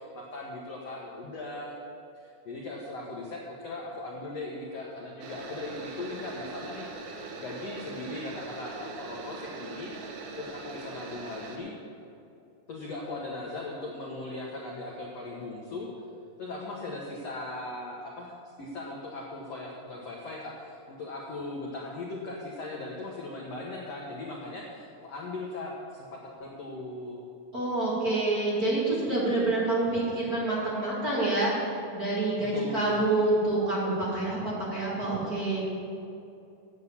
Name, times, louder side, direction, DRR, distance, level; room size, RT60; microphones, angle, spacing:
voice 1, 0.0-1.7 2.1-9.9 10.3-11.7 12.7-15.9 16.4-27.2 32.4-33.0, left 2 dB, 75° left, -2 dB, 1.4 m, -39 dB
sound 1, 5.2-11.6, right 3 dB, 85° right, 3.4 m, -41 dB
voice 2, 27.5-35.6, right 2 dB, 30° right, -8 dB, 2.2 m, -27 dB
10.5 x 8.1 x 7.2 m, 2.7 s
omnidirectional pair, 4.8 m